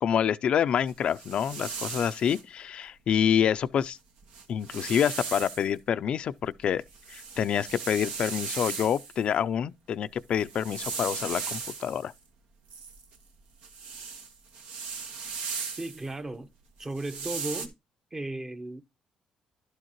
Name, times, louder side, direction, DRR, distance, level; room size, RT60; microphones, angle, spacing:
voice 1, 0.0-4.0 4.5-6.8 7.1-12.1, left 8 dB, 60° left, 0.4 m, -27 dB
sound 1, 0.9-2.4 3.8-3.9 4.2-5.7 6.2-9.2 10.2-12.1 12.7-16.1 16.8-17.7, right 5 dB, 80° right, 1.3 m, -37 dB
voice 2, 15.8-16.5 16.8-17.7 18.1-18.8, right 2 dB, 20° right, 0.8 m, -35 dB
11.5 x 6.3 x 3.0 m
cardioid pair, 90°, 2 cm